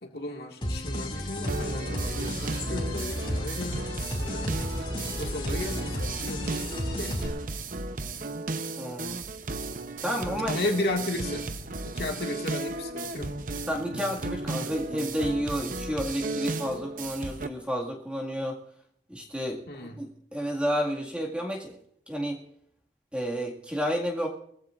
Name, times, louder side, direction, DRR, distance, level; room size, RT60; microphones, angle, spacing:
voice 1, 0.0-3.9 4.2-4.7 5.0-6.4 7.0-7.2 10.4-11.5 11.8-13.3 19.7-20.0, left 2 dB, 60° left, 2 dB, 2.0 m, -34 dB
sound 1, 0.6-7.3, left 1 dB, 30° left, 2.5 m, -32 dB
sound 2, 1.5-17.5, right 3 dB, 45° right, 0.8 m, -35 dB
sound 3, 1.6-7.5, right 1 dB, 85° right, 1.6 m, -46 dB
voice 2, 8.8-9.2 10.0-10.7 13.7-18.6 19.1-21.8 22.1-22.4 23.1-24.3, equal, 5° right, -1 dB, 2.0 m, -31 dB
22.5 x 15.0 x 2.5 m, 0.70 s
head